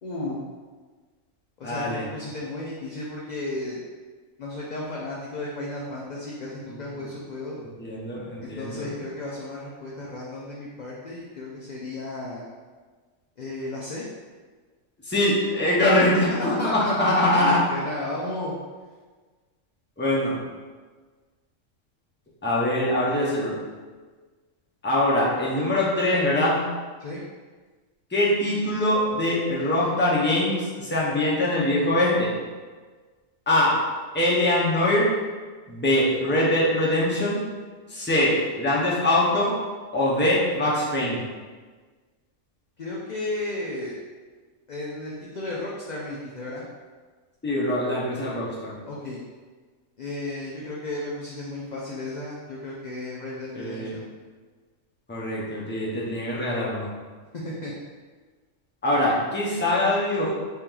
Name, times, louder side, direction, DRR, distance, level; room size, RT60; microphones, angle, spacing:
voice 1, 0.0-0.4 1.6-3.8 4.4-7.6 8.4-12.5 13.4-14.0 16.6-18.6 27.0-27.2 42.8-43.9 44.7-46.6 48.9-49.2 50.0-54.0 57.4-57.7, left 2 dB, 60° left, -5 dB, 0.4 m, -34 dB
voice 2, 1.6-2.0 6.7-7.1 7.8-8.9 15.0-17.6 20.0-20.4 22.4-23.5 24.8-26.6 28.1-32.3 33.5-33.8 34.1-35.1 35.7-37.4 37.9-39.6 39.9-41.2 47.4-48.7 53.5-54.0 55.1-56.9 58.8-60.3, left 1 dB, 10° left, -6 dB, 0.6 m, -23 dB
3.4 x 2.9 x 3.7 m, 1.4 s
omnidirectional pair, 1.4 m